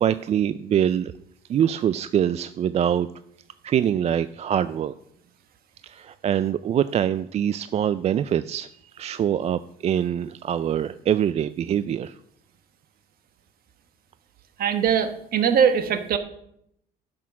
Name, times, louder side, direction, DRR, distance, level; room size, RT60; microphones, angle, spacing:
voice 1, 0.0-1.1 1.5-3.1 3.6-4.9 5.8-8.7 8.9-12.2, right 9 dB, 40° right, 14 dB, 0.4 m, -24 dB
voice 2, 14.6-16.2, right 7 dB, 60° right, 9 dB, 1.3 m, -21 dB
10.5 x 6.2 x 5.9 m, 0.75 s
cardioid pair, 110°, 17 cm